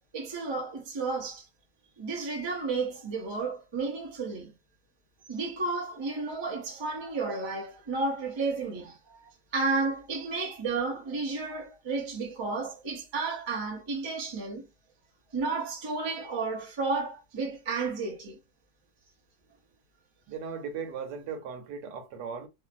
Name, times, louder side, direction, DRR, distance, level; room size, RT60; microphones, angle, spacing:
voice 1, 0.1-1.4 2.0-4.5 5.3-14.7 15.3-18.4, right 3 dB, 40° right, 0.3 m, -32 dB
voice 2, 20.3-22.5, right 6 dB, 90° right, 1.3 m, -37 dB
2.8 x 2.5 x 2.5 m
omnidirectional pair, 1.8 m